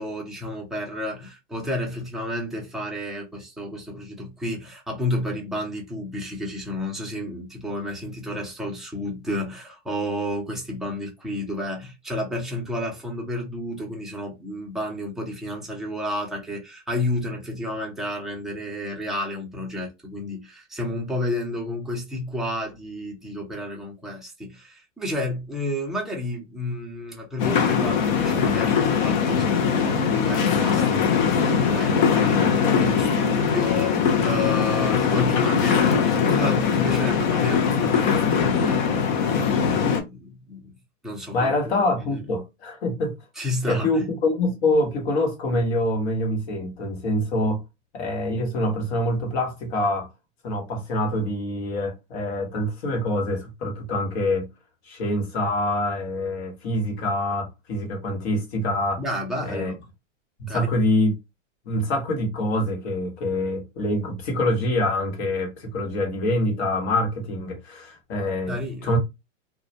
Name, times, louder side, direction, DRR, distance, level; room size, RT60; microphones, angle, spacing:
voice 1, 0.0-40.7 41.0-41.5 42.0-42.2 43.4-44.1 59.0-59.8 60.5-60.7 68.5-69.0, left 1 dB, ahead, 0.6 m, -31 dB
sound 1, 27.4-40.0, left 6 dB, 40° left, 0.6 m, -21 dB
voice 2, 41.3-43.1 43.7-47.6 47.9-50.1 50.4-54.5 54.8-59.0 59.4-59.7 60.4-61.1 61.6-69.0, left 1 dB, 55° left, 1.2 m, -25 dB
2.3 x 2.2 x 2.8 m
hypercardioid pair, 130°, 38 cm